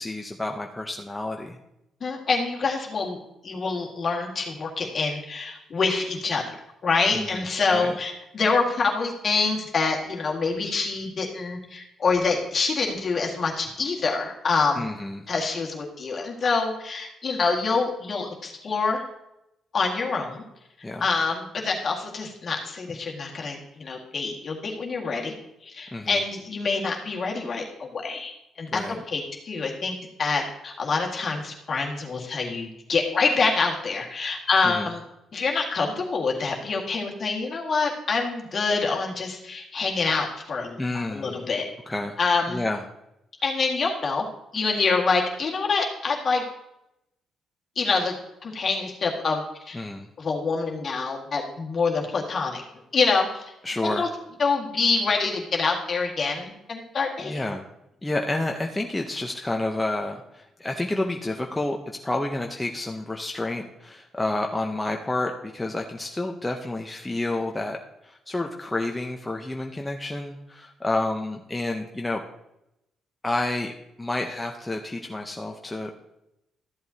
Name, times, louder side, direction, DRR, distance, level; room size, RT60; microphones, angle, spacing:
voice 1, 0.0-1.6 7.1-7.4 7.7-7.9 14.8-15.2 20.8-21.0 25.9-26.2 28.7-29.0 34.6-34.9 40.8-41.5 41.9-42.2 42.5-42.8 49.7-50.1 53.6-54.1 57.2-57.6 58.0-67.8 68.0-72.2 73.2-73.7 74.0-75.9, left 2 dB, 15° left, 2 dB, 0.7 m, -29 dB
voice 2, 2.0-3.2 3.4-6.4 6.8-14.9 15.3-19.0 19.7-20.4 21.0-25.3 25.6-28.3 28.6-28.8 29.1-29.9 30.2-35.0 35.3-41.7 42.2-42.6 43.4-44.3 44.5-46.4 47.8-48.1 48.4-49.8 50.2-52.6 52.9-53.5 53.8-54.1 54.4-57.4, left 4 dB, 45° left, 0 dB, 1.8 m, -26 dB
13.5 x 7.7 x 2.8 m, 0.86 s
cardioid pair, 90°, 0 cm